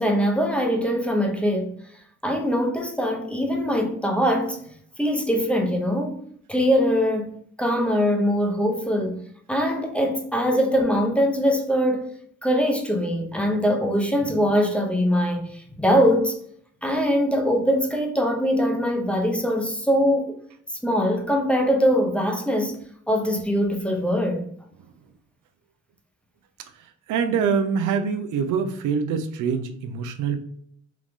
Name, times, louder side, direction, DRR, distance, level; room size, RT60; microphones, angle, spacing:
voice 1, 0.0-1.7 2.2-4.6 5.0-9.2 9.5-12.1 12.4-16.4 16.8-20.3 20.8-22.8 23.1-24.5, equal, 5° left, 0.8 m, -22 dB
voice 2, 27.1-30.4, right 6 dB, 80° right, 0.6 m, -24 dB
4.7 x 2.4 x 3.5 m
cardioid pair, 90°, 30 cm